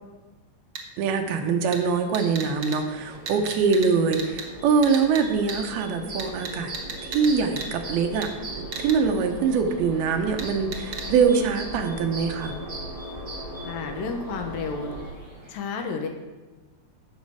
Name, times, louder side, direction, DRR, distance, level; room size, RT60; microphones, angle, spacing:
sound 1, 0.7-0.8 1.7-1.8 2.1-2.8 3.3-3.9 4.1-4.4 4.8-5.2 5.5-5.6 6.2-7.3 7.6-7.7 8.2-8.3 8.7-8.9 10.4-10.5 10.7-11.0, right 6 dB, 65° right, 1.3 m, -33 dB
voice 1, 1.0-6.7 7.0-12.6, right 5 dB, 85° right, 5 dB, 2.9 m, -23 dB
sound 2, 1.8-15.1, equal, 15° left, 2.0 m, -39 dB
sound 3, 1.8-15.5, right 2 dB, 25° right, 3.4 m, -43 dB
voice 2, 13.6-14.9 15.5-16.1, left 4 dB, 75° left, 4 dB, 2.6 m, -31 dB
15.0 x 6.7 x 4.8 m, 1.2 s
omnidirectional pair, 4.3 m